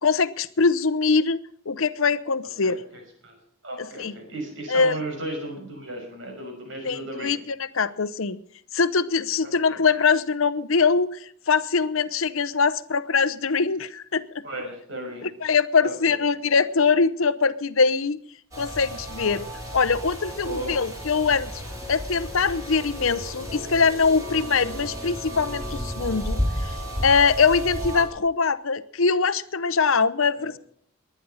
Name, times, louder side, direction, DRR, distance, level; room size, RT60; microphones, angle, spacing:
voice 1, 0.0-1.4 1.7-2.8 4.0-4.1 4.7-5.0 6.8-8.4 8.7-14.4 15.2-18.2 18.6-19.4 19.7-21.6 21.9-26.7 27.0-30.6, left 5 dB, 75° left, 16 dB, 0.8 m, -23 dB
voice 2, 2.6-3.4 3.6-7.4 9.4-9.8 14.4-15.3 15.8-16.2 20.4-20.8 30.4-30.5, right 1 dB, 60° right, 3 dB, 6.0 m, -35 dB
sound 1, 18.5-28.0, equal, 15° right, 4.8 m, -33 dB
21.0 x 10.0 x 5.6 m, 0.62 s
head